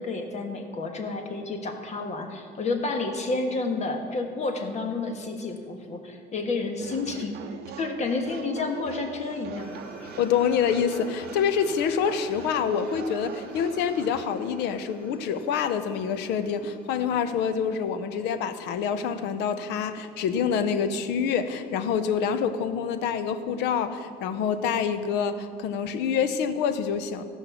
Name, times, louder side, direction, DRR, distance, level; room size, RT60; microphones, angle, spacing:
voice 1, 0.0-7.4 7.8-9.7, left 3 dB, 40° left, 4 dB, 1.5 m, -30 dB
sound 1, 6.8-14.3, right 10 dB, 70° right, 0.6 m, -42 dB
sound 2, 9.5-19.0, left 1 dB, 10° left, 2.6 m, -48 dB
voice 2, 10.2-27.2, left 7 dB, 90° left, 11 dB, 0.8 m, -26 dB
15.5 x 5.4 x 7.0 m, 2.3 s
cardioid pair, 110°, 17 cm